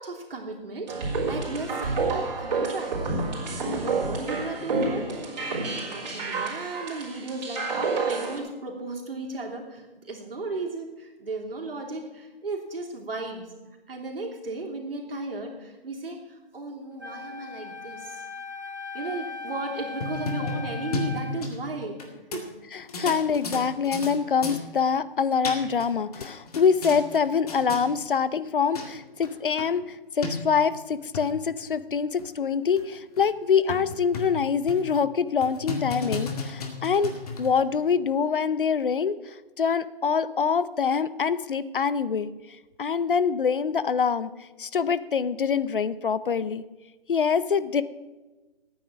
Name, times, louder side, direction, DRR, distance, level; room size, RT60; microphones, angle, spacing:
voice 1, 0.0-3.0 3.7-5.1 5.8-13.5 13.9-18.3 18.9-22.0 22.3-22.4, right 3 dB, 70° right, 0 dB, 3.2 m, -35 dB
sound 1, 0.9-8.4, right 3 dB, 45° right, 3.5 m, -29 dB
Wind instrument woodwind instrument, 17.0-21.5, left 4 dB, 20° right, 0.3 m, -38 dB
sound 2, 19.8-22.0 22.3-22.4 22.9-24.1 24.4-24.6 25.2-25.9 26.1-27.2 27.5-27.8 28.5-28.6 28.7-28.9 29.2-29.3 29.6-29.7 30.2-30.3 30.9-31.2 31.7-31.8 32.2-32.3 32.8-32.9 33.2-33.3 33.7-34.4 34.7-34.9 35.4-37.6, left 3 dB, 40° left, 2.1 m, -33 dB
voice 2, 22.7-37.1 37.4-42.3 42.8-46.6 47.1-47.8, left 6 dB, 60° left, 15 dB, 0.7 m, -25 dB
12.5 x 9.3 x 6.1 m, 1.1 s
figure-of-eight pair, 150°, 30 cm